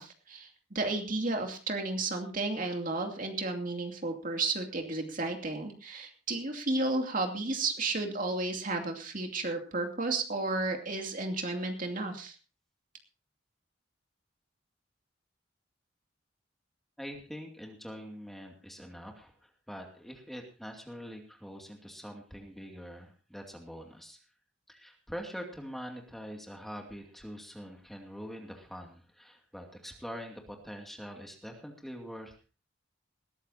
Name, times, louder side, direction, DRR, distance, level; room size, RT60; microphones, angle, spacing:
voice 1, 0.0-12.3, right 2 dB, 45° right, 3 dB, 2.7 m, -33 dB
voice 2, 17.0-24.2 24.7-32.5, equal, ahead, 2 dB, 2.4 m, -44 dB
20.5 x 13.5 x 2.8 m, 0.35 s
head